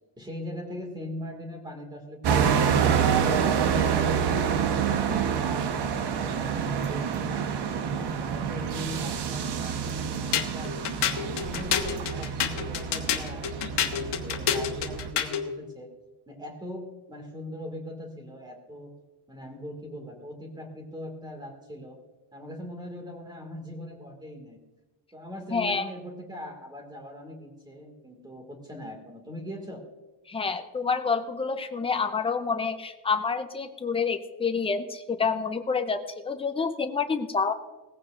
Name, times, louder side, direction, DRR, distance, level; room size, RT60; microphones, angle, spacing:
voice 1, 0.2-3.1 3.4-5.4 5.7-10.8 11.1-15.9 16.3-18.9 19.3-22.0 22.3-24.6 25.1-29.9, left 1 dB, 10° right, 3 dB, 2.0 m, -40 dB
sound 1, 2.2-15.1, right 7 dB, 80° right, 1.1 m, -27 dB
sound 2, 10.3-15.5, left 9 dB, 90° left, 1.3 m, -28 dB
voice 2, 25.5-25.9 30.3-37.5, left 5 dB, 15° left, 7 dB, 0.6 m, -28 dB
18.0 x 15.0 x 2.5 m, 1.2 s
cardioid pair, 175°, 41 cm